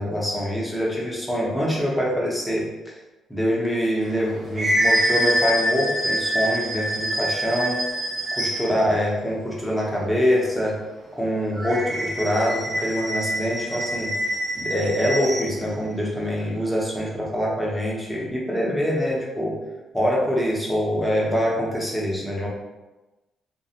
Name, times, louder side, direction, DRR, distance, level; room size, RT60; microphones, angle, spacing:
voice 1, 0.0-2.7 3.3-7.8 8.4-10.8 11.1-14.2 14.5-19.6 19.9-22.5, equal, 5° left, -4 dB, 0.7 m, -24 dB
sound 1, 4.1-8.8 11.6-15.6, equal, 30° right, 0.6 m, -25 dB
2.4 x 2.1 x 2.7 m, 1.1 s
cardioid pair, 90°, 0 cm